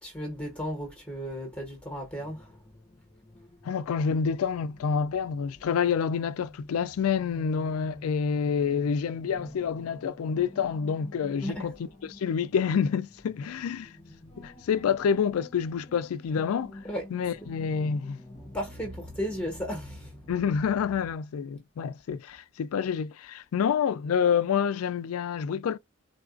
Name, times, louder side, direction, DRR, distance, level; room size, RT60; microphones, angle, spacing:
voice 1, 0.0-2.5 11.4-11.7 16.9-17.0 18.5-20.1, equal, 5° left, 1.1 m, -34 dB
sound 1, 2.2-21.1, left 1 dB, 25° left, 0.6 m, -48 dB
voice 2, 3.6-11.8 12.0-13.9 14.4-16.8 17.1-18.2 20.3-25.8, left 7 dB, 85° left, 0.3 m, -28 dB
3.8 x 2.4 x 2.4 m
head